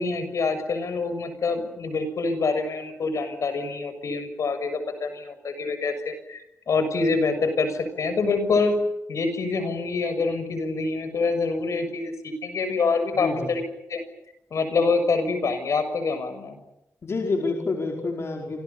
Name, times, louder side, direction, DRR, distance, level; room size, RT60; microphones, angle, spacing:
voice 1, 0.0-8.7 9.1-13.6 13.9-14.0 14.5-16.6, left 4 dB, 70° left, 9 dB, 6.6 m, -26 dB
voice 2, 13.2-13.5 17.0-18.6, left 3 dB, 55° left, 1 dB, 4.9 m, -28 dB
29.0 x 27.0 x 7.0 m, 0.85 s
cardioid pair, 90°, 5 cm